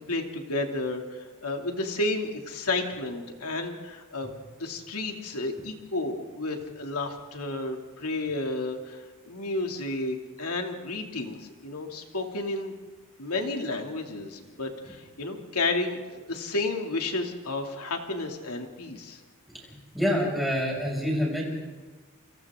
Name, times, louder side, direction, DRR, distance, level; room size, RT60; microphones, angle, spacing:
voice 1, 0.1-4.3 4.6-12.7 13.2-19.2, left 2 dB, 80° left, 3 dB, 2.6 m, -32 dB
voice 2, 19.7-21.4, equal, ahead, -3 dB, 6.4 m, -27 dB
29.0 x 27.0 x 3.7 m, 1.3 s
head